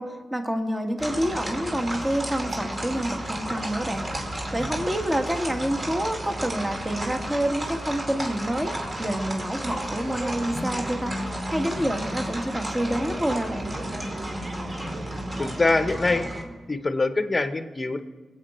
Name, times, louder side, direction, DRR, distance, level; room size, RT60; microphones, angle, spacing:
voice 1, 0.0-4.0 4.5-8.7 9.0-11.1 11.5-13.7, right 1 dB, 15° right, 4 dB, 1.5 m, -28 dB
sound 1, 1.0-16.4, right 1 dB, 30° right, 2.4 m, -32 dB
voice 2, 15.4-16.3 16.7-18.0, left 3 dB, 30° left, 10 dB, 0.9 m, -24 dB
23.0 x 8.4 x 4.3 m, 1.3 s
cardioid pair, 90°, 0 cm